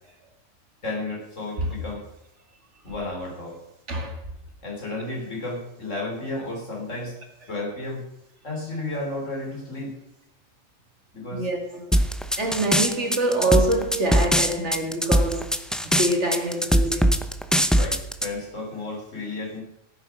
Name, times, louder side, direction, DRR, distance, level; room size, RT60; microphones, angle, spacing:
voice 1, 0.8-2.0 2.8-3.6 4.6-7.2 7.5-8.0 8.4-10.0 11.1-11.5 17.7-19.6, left 2 dB, 70° left, 4.0 m, -32 dB
voice 2, 3.9-4.2 11.3-11.9 12.4-15.6 15.8-17.2, right 1 dB, 60° right, 2.5 m, -25 dB
sound 1, 11.9-18.3, equal, ahead, 0.6 m, -21 dB
15.5 x 9.2 x 6.1 m
omnidirectional pair, 1.3 m